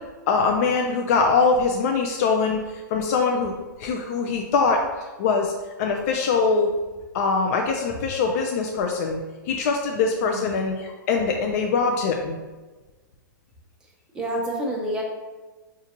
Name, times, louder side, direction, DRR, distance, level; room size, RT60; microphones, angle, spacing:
voice 1, 0.3-3.5 3.8-4.8 5.2-5.5 5.8-6.7 7.1-9.2 9.5-12.4, left 4 dB, 45° left, 2 dB, 0.4 m, -22 dB
voice 2, 14.1-15.0, right 1 dB, 5° right, -2 dB, 0.7 m, -28 dB
5.7 x 2.4 x 2.9 m, 1.2 s
hypercardioid pair, 145°, 11 cm